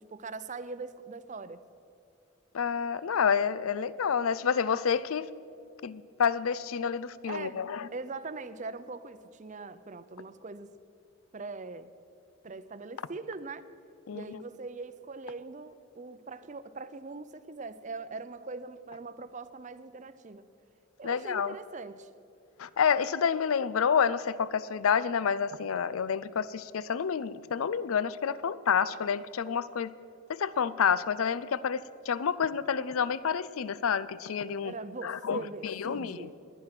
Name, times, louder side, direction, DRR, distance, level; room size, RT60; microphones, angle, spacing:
voice 1, 0.0-1.6 7.3-7.6 7.9-10.7 11.3-11.9 12.4-13.7 14.1-20.4 21.0-22.1 34.6-36.3, right 3 dB, 35° right, 13 dB, 0.6 m, -41 dB
voice 2, 2.5-5.3 5.8-7.9 14.1-14.2 21.0-21.5 22.6-29.9 30.3-34.7 35.0-36.3, left 7 dB, 90° left, 17 dB, 0.5 m, -29 dB
19.5 x 11.0 x 5.9 m, 2.5 s
head